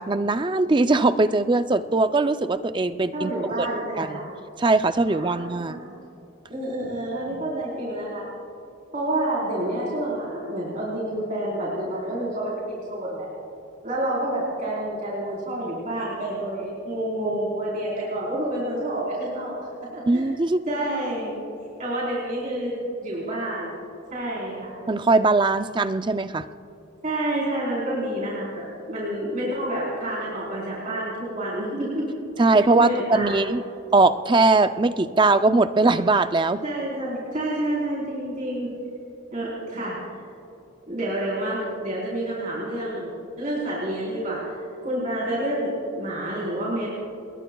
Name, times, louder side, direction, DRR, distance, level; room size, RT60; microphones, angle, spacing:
voice 1, 0.0-3.3 3.6-3.7 4.0-4.2 4.6-5.8 7.3-7.4 20.1-20.6 24.9-26.5 32.4-33.6 33.9-36.6, right 3 dB, 20° right, 10 dB, 0.4 m, -20 dB
voice 2, 3.1-4.2 5.1-5.9 6.5-8.2 8.9-13.3 13.8-20.3 20.7-21.3 21.8-22.7 23.0-23.7 24.1-24.7 27.0-32.0 32.4-32.5 32.7-33.5 36.6-38.7 39.3-40.3 40.9-43.1 43.4-46.9, right 1 dB, 40° right, -6 dB, 4.1 m, -29 dB
28.5 x 21.0 x 2.3 m, 2.8 s
head